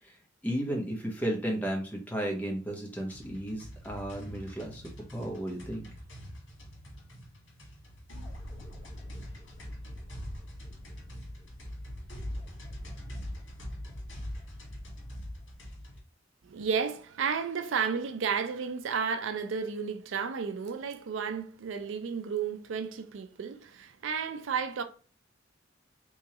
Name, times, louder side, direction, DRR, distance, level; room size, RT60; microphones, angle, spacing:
voice 1, 0.4-5.9, right 1 dB, 10° left, 0.9 m, -34 dB
sound 1, 3.1-16.0, equal, 90° left, 1.5 m, -43 dB
voice 2, 16.4-24.8, right 6 dB, 85° right, 0.4 m, -32 dB
3.5 x 3.1 x 2.9 m
head